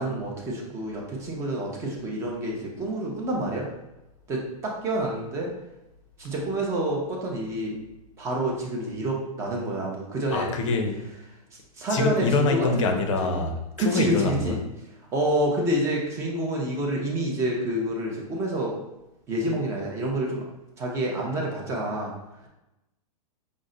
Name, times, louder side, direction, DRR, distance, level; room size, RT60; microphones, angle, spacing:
voice 1, 0.0-3.7 4.3-5.5 6.2-7.7 8.2-10.5 11.8-13.4 13.8-14.6 15.1-18.7 19.3-20.4 20.8-22.1, right 1 dB, 15° right, -2 dB, 0.5 m, -28 dB
voice 2, 10.3-11.1 11.9-14.6, left 3 dB, 55° left, 5 dB, 0.6 m, -25 dB
5.3 x 2.1 x 3.8 m, 0.95 s
supercardioid pair, 160°, 20 cm